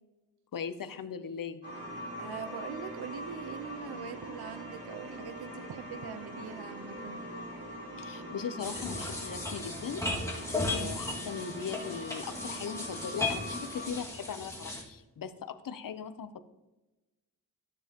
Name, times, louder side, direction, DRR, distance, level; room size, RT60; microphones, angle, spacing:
voice 1, 0.5-1.6 8.0-16.4, left 7 dB, 60° left, 12 dB, 0.7 m, -39 dB
sound 1, 1.6-13.9, equal, 65° right, 3.1 m, -43 dB
voice 2, 2.2-7.2 10.5-11.0, right 7 dB, 80° right, 10 dB, 0.8 m, -43 dB
sound 2, 8.6-14.8, left 2 dB, 10° left, 2.0 m, -36 dB
13.0 x 7.1 x 2.9 m, 1.1 s
wide cardioid pair, 105°, 38 cm